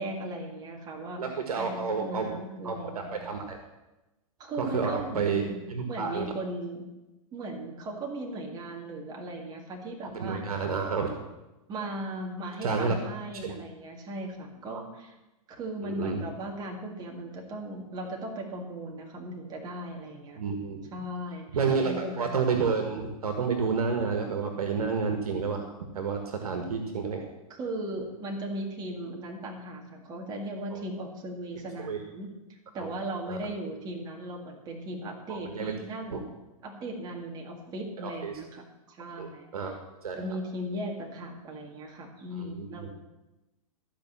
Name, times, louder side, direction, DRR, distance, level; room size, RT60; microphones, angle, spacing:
voice 1, 0.0-3.2 4.4-5.6 5.9-6.8 7.3-10.7 11.7-15.1 15.5-20.4 20.9-21.5 21.8-22.3 27.5-36.3 36.6-39.8 40.1-42.9, right 1 dB, 20° right, 1 dB, 1.9 m, -37 dB
voice 2, 1.2-2.3 2.6-3.6 4.6-6.3 10.1-11.2 12.6-12.9 13.4-13.5 15.8-16.2 20.4-20.9 21.5-25.7 25.9-27.2 30.7-30.8 31.8-32.0 32.7-32.9 33.3-33.4 35.3-35.7 36.1-36.2 38.0-38.3 39.2-39.7 40.0-40.2 42.4-42.9, right 5 dB, 85° right, 4 dB, 1.6 m, -30 dB
14.0 x 5.2 x 7.3 m, 1.0 s
hypercardioid pair, 145°, 19 cm